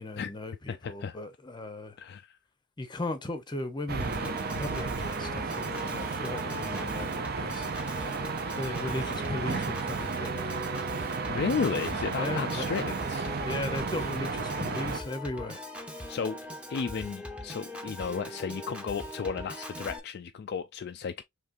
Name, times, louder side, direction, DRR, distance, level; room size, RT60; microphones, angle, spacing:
voice 1, 0.0-1.9 2.8-7.7 8.5-10.6 11.3-11.6 12.2-12.7 13.4-15.6, left 2 dB, 20° left, 0.7 m, -37 dB
voice 2, 0.7-1.2 2.0-2.4 11.3-13.4 16.1-16.4 16.7-21.2, left 6 dB, 50° left, 0.3 m, -33 dB
sound 1, 3.9-15.0, right 5 dB, 45° right, 0.5 m, -33 dB
Piano / Organ, 4.0-20.0, left 1 dB, 5° right, 0.8 m, -41 dB
4.9 x 3.2 x 2.5 m
head